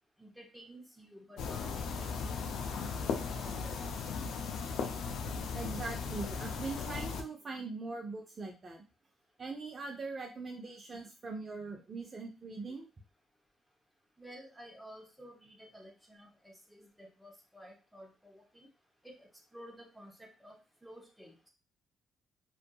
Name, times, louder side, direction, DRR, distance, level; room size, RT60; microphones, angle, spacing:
voice 1, 0.2-2.5 2.7-3.8 14.2-18.7 19.0-21.5, equal, ahead, 1 dB, 0.8 m, -53 dB
sound 1, 1.4-7.2, left 5 dB, 80° left, 0.4 m, -37 dB
voice 2, 5.5-8.8 9.4-12.9, right 3 dB, 40° right, 1 dB, 0.5 m, -41 dB
2.6 x 2.4 x 2.3 m, 0.32 s
cardioid pair, 90°, 0 cm